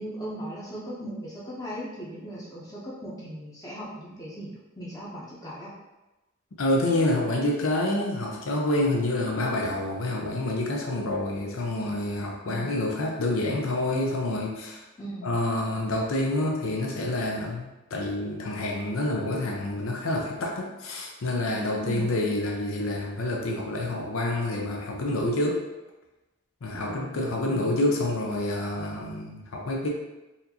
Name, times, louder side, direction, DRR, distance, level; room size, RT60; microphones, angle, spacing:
voice 1, 0.0-5.7 12.4-12.8 15.0-15.3 21.8-22.1 26.7-27.7, equal, 15° left, -7 dB, 0.7 m, -38 dB
voice 2, 6.6-14.8 15.2-25.6 26.6-29.9, left 1 dB, 90° left, -1 dB, 0.6 m, -28 dB
4.1 x 2.5 x 2.8 m, 1.0 s
head